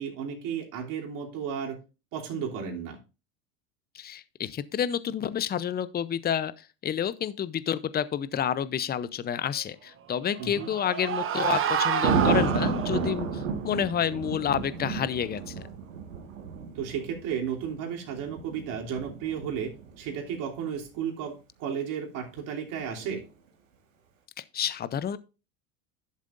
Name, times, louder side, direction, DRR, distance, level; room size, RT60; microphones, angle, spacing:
voice 1, 0.0-1.8 2.1-3.0 10.4-10.7 16.7-23.2, right 7 dB, 55° right, 3.1 m, -33 dB
voice 2, 3.9-15.7 24.4-25.2, left 9 dB, 25° left, 0.7 m, -29 dB
sound 1, 10.2-13.2, right 8 dB, 35° right, 1.1 m, -29 dB
Thunder, 12.0-20.1 22.8-23.1, right 5 dB, 85° right, 1.8 m, -31 dB
11.5 x 7.3 x 2.6 m
hypercardioid pair, 85°, 38 cm